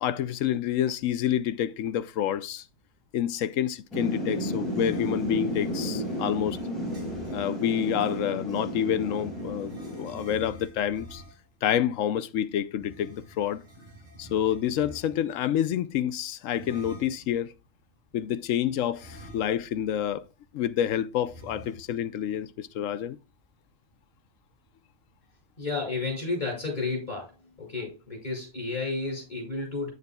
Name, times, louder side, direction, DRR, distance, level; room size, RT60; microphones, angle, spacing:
voice 1, 0.0-2.6 3.1-6.6 7.3-11.2 11.6-13.6 14.2-17.5 18.1-20.3 20.5-23.2, left 10 dB, 75° left, 1.0 m, -28 dB
Thunder / Rain, 3.9-10.3, equal, ahead, 5.3 m, -33 dB
sound 1, 4.6-7.5 8.4-11.5 12.7-15.4 16.4-17.3 18.9-19.8 20.1-20.2 21.2-22.1, right 1 dB, 35° right, 4.4 m, -47 dB
voice 2, 25.6-27.3 27.6-29.9, left 3 dB, 30° left, 5.9 m, -31 dB
9.5 x 9.2 x 2.3 m
omnidirectional pair, 1.4 m